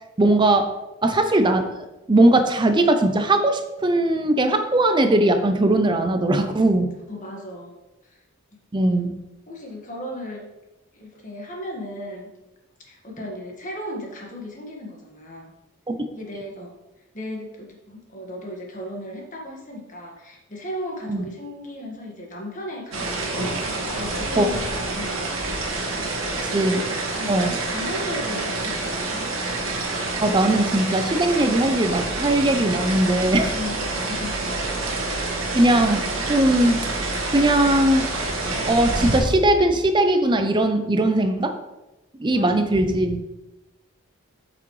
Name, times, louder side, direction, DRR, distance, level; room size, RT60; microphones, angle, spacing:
voice 1, 0.2-0.8 1.0-6.9 8.7-9.2 15.9-16.0 21.1-21.2 24.4-24.5 26.5-26.9 27.3-27.6 30.2-33.5 35.5-36.9 37.3-38.1 38.7-41.5 42.2-43.2, right 1 dB, 20° right, 7 dB, 0.5 m, -19 dB
voice 2, 7.1-7.7 8.0-8.2 9.5-10.4 10.9-12.3 12.8-15.5 16.1-16.7 17.1-25.7 26.3-26.5 27.1-29.2 33.5-34.5 42.3-43.1, left 1 dB, 35° left, 0 dB, 1.5 m, -36 dB
sound 1, 22.9-39.2, right 2 dB, 65° right, 1.4 m, -27 dB
8.4 x 5.9 x 3.1 m, 1.0 s
head